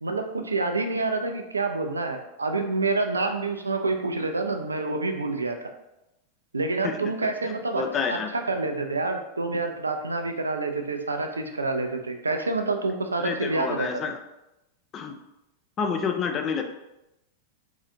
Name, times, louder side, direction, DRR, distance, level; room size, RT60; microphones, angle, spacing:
voice 1, 0.0-5.6 6.5-7.8 8.1-13.9, right 3 dB, 80° right, 5 dB, 0.4 m, -27 dB
voice 2, 7.4-8.3 13.2-14.2 14.9-15.2 15.8-16.6, left 6 dB, 30° left, 5 dB, 0.4 m, -29 dB
3.7 x 3.2 x 2.6 m, 0.93 s
figure-of-eight pair, 90°, 0 cm